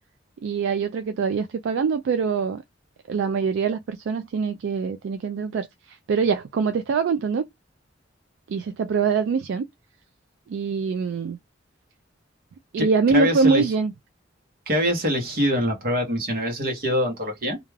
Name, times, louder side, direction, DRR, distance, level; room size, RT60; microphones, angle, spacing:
voice 1, 0.4-2.6 3.1-7.4 8.5-9.6 10.5-11.4 12.7-13.9, right 5 dB, 70° right, 0.3 m, -24 dB
voice 2, 12.8-13.6 14.7-17.6, equal, 50° right, 1.0 m, -24 dB
2.4 x 2.2 x 3.1 m
head